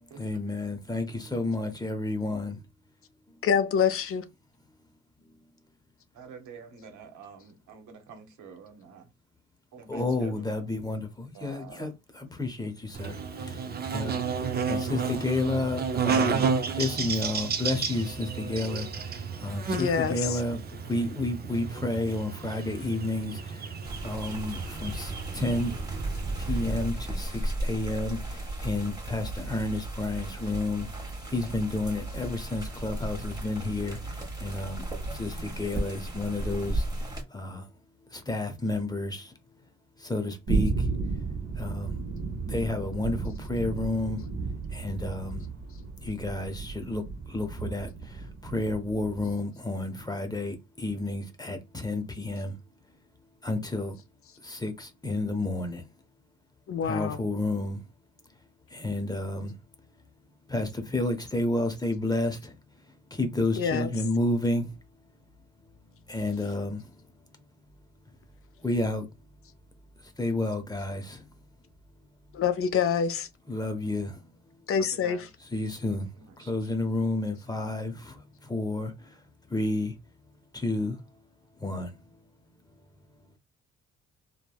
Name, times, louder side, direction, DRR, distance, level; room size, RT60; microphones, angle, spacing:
voice 1, 0.2-2.6 9.9-14.2 14.7-16.5 16.8-25.7 26.4-30.9 31.3-37.7 38.1-39.3 40.0-40.9 41.6-42.0 42.5-44.2 44.7-45.4 46.0-52.5 53.4-54.0 54.4-55.8 56.8-57.8 58.7-59.5 60.5-62.6 63.1-64.7 66.1-66.9 68.6-69.1 70.2-71.3 73.5-74.2 75.4-76.1 76.4-79.2 79.5-79.9 80.5-81.0 81.6-81.9, left 2 dB, 15° left, 0.7 m, -31 dB
voice 2, 3.4-4.2 19.7-20.1 56.7-57.2 63.6-63.9 72.3-73.3 74.7-75.2, left 7 dB, 50° left, 0.4 m, -26 dB
voice 3, 6.1-9.1 9.7-10.6 11.3-11.9 74.8-75.3 76.2-76.5, right 6 dB, 80° right, 0.9 m, -47 dB
Buzz, 12.9-26.9, right 5 dB, 35° right, 0.5 m, -32 dB
sound 1, 23.8-37.2, right 1 dB, 15° right, 1.1 m, -35 dB
sound 2, 40.5-49.4, right 4 dB, 50° right, 1.0 m, -33 dB
3.2 x 2.1 x 2.3 m
cardioid pair, 90°, 30 cm